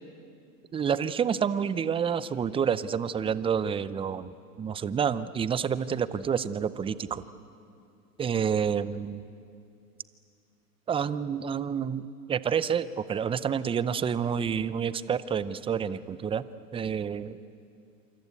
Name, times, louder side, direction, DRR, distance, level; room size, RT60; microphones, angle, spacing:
voice 1, 0.7-7.2 8.2-9.2 10.9-16.4 16.7-17.4, right 7 dB, 10° right, 16 dB, 0.6 m, -29 dB
27.5 x 25.5 x 8.3 m, 2.4 s
hypercardioid pair, 110°, 46 cm